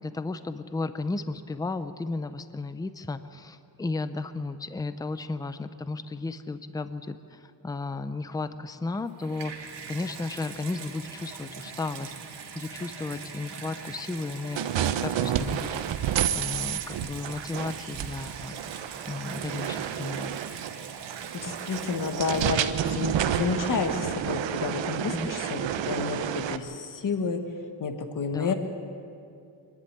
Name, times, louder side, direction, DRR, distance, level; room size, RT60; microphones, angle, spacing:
voice 1, 0.0-12.1 12.5-18.5 19.1-20.4 25.1-25.3 28.3-28.5, left 3 dB, 10° left, 12 dB, 0.5 m, -34 dB
Water tap faucet / Bathtub (filling or washing), 8.9-23.0 23.8-23.9, right 6 dB, 65° right, 2.1 m, -42 dB
sound 1, 14.6-26.6, right 10 dB, 80° right, 0.9 m, -30 dB
voice 2, 21.3-27.4 27.8-28.5, left 5 dB, 45° left, 6 dB, 1.6 m, -30 dB
24.5 x 11.0 x 9.8 m, 2.5 s
wide cardioid pair, 160°, 44 cm